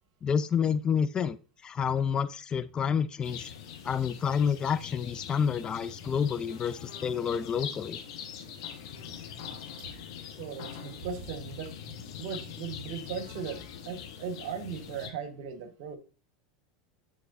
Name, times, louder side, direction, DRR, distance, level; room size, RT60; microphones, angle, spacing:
voice 1, 0.2-1.4 1.6-3.5 3.8-8.0, left 7 dB, 25° left, 13 dB, 0.3 m, -29 dB
sound 1, 3.2-15.1, left 8 dB, 60° left, 1.2 m, -43 dB
voice 2, 10.4-11.7 12.2-16.0, right 7 dB, 55° right, 9 dB, 1.1 m, -38 dB
9.6 x 4.1 x 2.5 m, 0.36 s
figure-of-eight pair, 80°, 3 cm